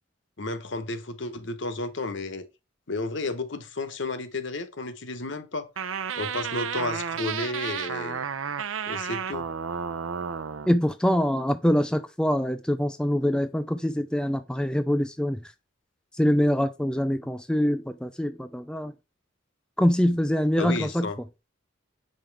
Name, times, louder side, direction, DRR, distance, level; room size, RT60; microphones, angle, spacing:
voice 1, 0.4-2.5 2.9-5.7 6.2-8.2 8.9-9.5 20.6-21.2, left 2 dB, 60° left, 1.0 m, -32 dB
sound 1, 5.8-10.7, right 7 dB, 80° right, 0.7 m, -32 dB
voice 2, 10.7-15.5 16.1-18.9 19.8-21.1, equal, 5° left, 0.3 m, -24 dB
8.6 x 5.3 x 3.4 m
head